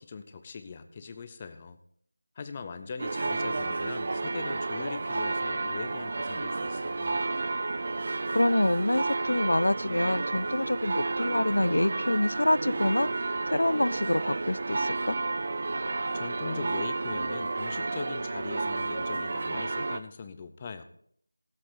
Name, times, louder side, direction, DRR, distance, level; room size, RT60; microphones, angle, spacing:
voice 1, 0.0-1.8 2.4-7.2 16.1-20.8, left 5 dB, 15° left, 0.6 m, -41 dB
sound 1, 3.0-20.0, right 3 dB, 35° right, 0.5 m, -31 dB
voice 2, 8.3-15.2, left 1 dB, 75° left, 0.3 m, -26 dB
17.5 x 8.1 x 3.8 m
figure-of-eight pair, 175°, 0 cm